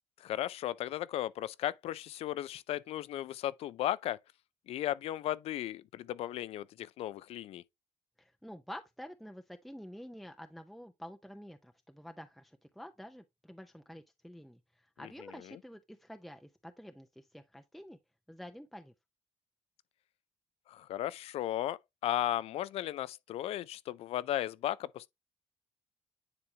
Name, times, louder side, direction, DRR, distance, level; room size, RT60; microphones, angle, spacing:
voice 1, 0.2-4.2 4.7-7.6 15.5-15.6 20.7-25.1, left 13 dB, 65° left, 0.4 m, -35 dB
voice 2, 8.2-18.0 18.3-18.9, equal, ahead, 0.5 m, -49 dB
9.7 x 3.5 x 2.8 m
cardioid pair, 110°, 11 cm